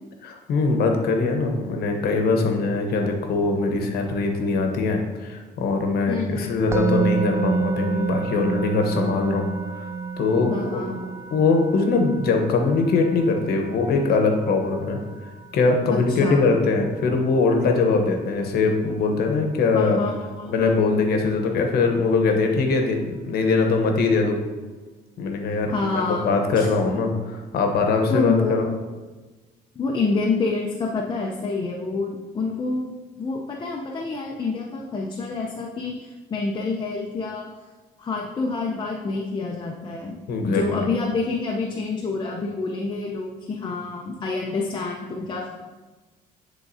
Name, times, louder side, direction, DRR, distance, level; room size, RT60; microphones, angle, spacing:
voice 1, 0.2-9.4 10.2-10.8 11.3-15.0 15.5-20.0 20.5-24.4 25.2-28.6 40.3-40.6, left 3 dB, 65° left, 4 dB, 1.0 m, -22 dB
voice 2, 6.1-6.5 10.5-11.0 15.9-16.5 19.7-20.7 25.7-26.7 28.1-28.8 29.8-37.5 38.0-40.2 40.5-45.5, left 3 dB, 25° left, -1 dB, 0.6 m, -27 dB
Musical instrument, 6.7-17.8, right 4 dB, 15° right, 0.3 m, -30 dB
10.0 x 3.7 x 2.7 m, 1.3 s
cardioid pair, 110°, 17 cm